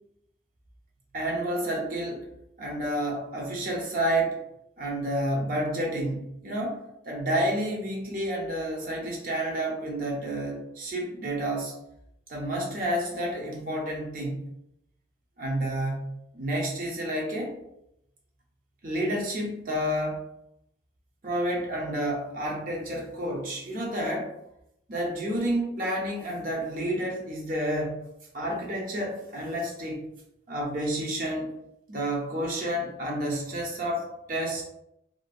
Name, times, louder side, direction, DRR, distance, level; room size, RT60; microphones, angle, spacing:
voice 1, 1.1-2.2 2.6-4.4 4.8-6.8 7.1-11.7 12.3-14.5 15.4-17.6 18.8-20.2 21.2-24.3 24.9-28.0 28.3-30.0 30.5-31.5 31.9-34.6, right 1 dB, 50° right, -2 dB, 0.5 m, -30 dB
2.5 x 2.1 x 2.3 m, 0.81 s
head